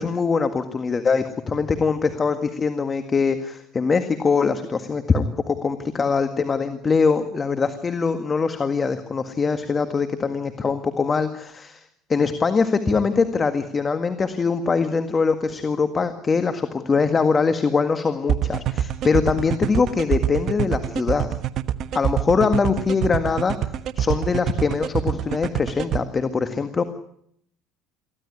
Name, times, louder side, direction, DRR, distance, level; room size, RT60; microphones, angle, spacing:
voice 1, 0.0-21.4 21.9-23.6 24.0-26.8, left 5 dB, 25° left, 9 dB, 1.8 m, -22 dB
sound 1, 18.3-26.0, right 11 dB, 55° right, 1.2 m, -24 dB
24.0 x 15.5 x 9.7 m, 0.70 s
supercardioid pair, 95°, 0 cm